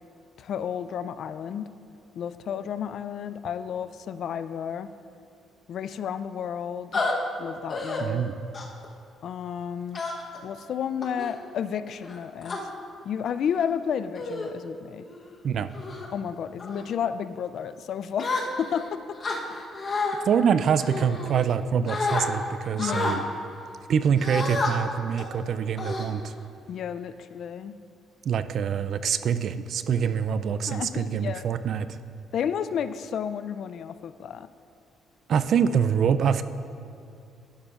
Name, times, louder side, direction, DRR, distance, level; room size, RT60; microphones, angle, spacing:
voice 1, 0.4-1.7 2.1-4.9 5.7-7.0 7.4-8.2 9.2-10.1 10.4-12.6 13.0-15.1 16.1-19.2 22.8-23.3 26.7-27.8 30.7-31.5 32.3-34.5, left 8 dB, 55° left, 13 dB, 0.3 m, -32 dB
sound 1, 6.9-7.1 7.7-8.0 8.5-8.8 9.9-10.4 11.0-11.3 12.0-12.6 13.4-13.6 14.1-14.5 15.0-15.2 15.7-16.1 16.6-16.9 18.2-18.8 19.2-20.2 20.8-21.6 21.9-22.2 22.8-23.2 24.2-24.7 25.2-25.3 25.8-26.5, left 3 dB, 35° left, 1.0 m, -30 dB
voice 2, 8.0-8.3 15.4-15.7 20.3-23.2 23.9-26.3 28.2-31.9 35.3-36.4, right 7 dB, 55° right, 12 dB, 0.3 m, -25 dB
11.5 x 10.5 x 2.4 m, 2.5 s
cardioid pair, 140°, 0 cm